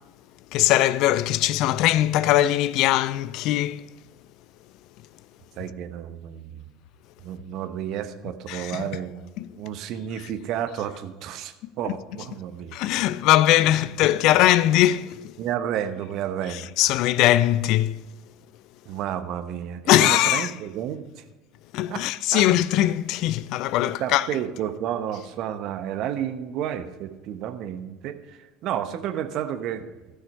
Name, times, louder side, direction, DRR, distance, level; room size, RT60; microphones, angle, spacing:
voice 1, 0.5-3.8 8.5-8.8 9.4-9.5 11.8-11.9 12.7-15.3 16.8-18.0 19.9-20.5 21.7-24.3, left 14 dB, 55° left, 0.4 m, -21 dB
voice 2, 5.6-6.6 7.2-9.3 9.6-13.1 15.4-17.0 18.8-21.2 21.9-22.0 22.3-22.5 23.8-29.9, right 10 dB, 55° right, 0.9 m, -31 dB
13.0 x 6.3 x 5.4 m
hypercardioid pair, 75°, 0 cm